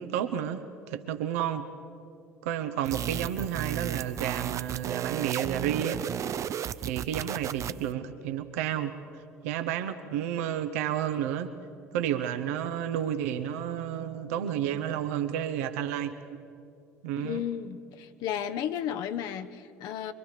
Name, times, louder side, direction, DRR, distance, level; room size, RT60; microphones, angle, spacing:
voice 1, 0.0-1.7 2.4-6.0 6.8-8.9 9.4-11.5 11.9-16.2 17.0-17.4, right 10 dB, 70° right, 9 dB, 1.0 m, -31 dB
sound 1, 2.8-7.9, right 9 dB, 40° right, 0.6 m, -34 dB
voice 2, 17.2-20.1, left 9 dB, 55° left, 9 dB, 0.9 m, -33 dB
24.0 x 23.0 x 6.7 m, 2.5 s
hypercardioid pair, 65°, 8 cm